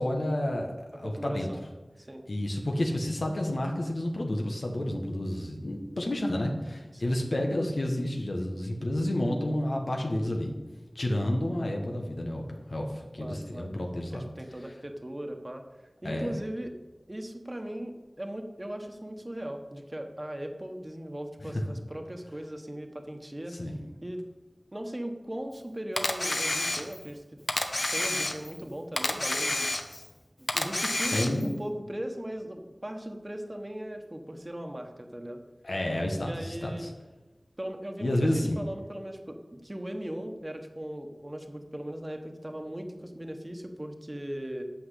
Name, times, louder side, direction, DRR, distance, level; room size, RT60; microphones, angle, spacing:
voice 1, 0.0-1.5 2.3-10.5 10.9-12.4 12.7-14.2 16.0-16.3 21.4-21.5 23.5-23.8 29.9-30.0 31.1-31.6 35.6-36.9 38.0-38.6, left 1 dB, 80° left, 1 dB, 1.4 m, -30 dB
voice 2, 1.0-1.6 2.0-2.3 6.9-7.2 13.2-13.7 14.1-15.6 16.0-16.7 17.1-23.6 24.0-24.2 24.7-27.2 27.9-29.7 30.5-35.4 36.2-36.9 37.6-44.6, right 1 dB, 30° right, 5 dB, 1.3 m, -38 dB
Camera, 26.0-27.1 27.5-28.6 29.0-30.1 30.5-31.5, left 2 dB, 60° left, 1.1 m, -29 dB
9.1 x 5.8 x 8.3 m, 1.1 s
wide cardioid pair, 40°, 0 cm